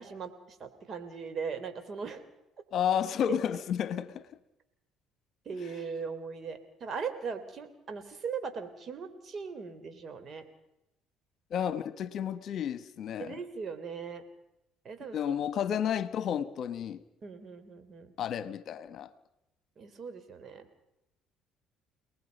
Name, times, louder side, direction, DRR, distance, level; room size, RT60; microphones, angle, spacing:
voice 1, 0.0-2.2 5.4-10.4 13.2-14.2 14.8-15.3 17.2-18.1 19.8-20.7, right 5 dB, 45° right, 3.5 m, -39 dB
voice 2, 2.7-4.3 11.5-13.4 15.1-17.0 18.2-19.1, left 9 dB, 60° left, 1.2 m, -31 dB
29.5 x 19.5 x 5.4 m
supercardioid pair, 85°, 0 cm